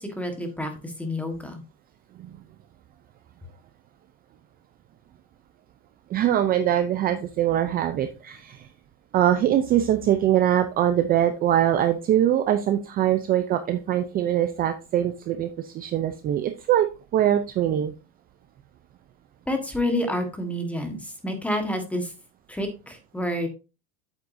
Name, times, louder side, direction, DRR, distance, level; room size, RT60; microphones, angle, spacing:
voice 1, 0.0-1.6 19.5-22.1 22.5-23.5, left 1 dB, 5° left, 5 dB, 1.4 m, -29 dB
voice 2, 6.1-8.7 9.1-16.9 17.1-17.9, right 11 dB, 25° right, 8 dB, 0.5 m, -23 dB
8.2 x 8.1 x 2.7 m, 0.30 s
supercardioid pair, 150°, 34 cm